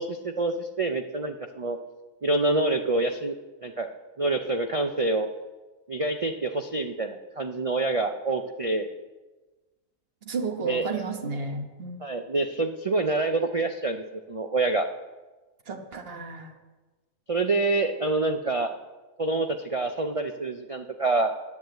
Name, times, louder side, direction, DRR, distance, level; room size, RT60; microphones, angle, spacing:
voice 1, 0.0-1.8 2.2-3.4 3.6-3.9 4.2-5.3 5.9-8.9 10.6-10.8 12.0-14.9 17.3-18.7 19.2-21.3, right 2 dB, 65° right, 6 dB, 0.3 m, -26 dB
voice 2, 10.2-12.0 15.7-16.5, right 4 dB, 45° right, 5 dB, 1.4 m, -32 dB
10.5 x 9.8 x 7.7 m, 1.2 s
omnidirectional pair, 1.5 m